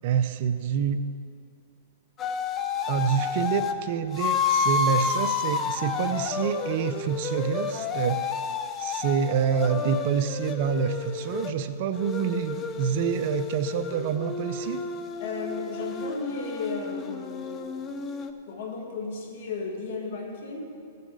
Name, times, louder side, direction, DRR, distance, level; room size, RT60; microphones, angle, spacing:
voice 1, 0.0-1.0 2.9-14.8, right 7 dB, 50° right, 11 dB, 0.6 m, -27 dB
sound 1, 2.2-3.8 4.2-11.5 11.9-18.3, left 5 dB, 25° left, 0.7 m, -30 dB
voice 2, 15.2-18.0 18.5-20.6, left 4 dB, 60° left, 1 dB, 2.0 m, -35 dB
16.0 x 6.9 x 4.9 m, 2.3 s
hypercardioid pair, 130°, 0 cm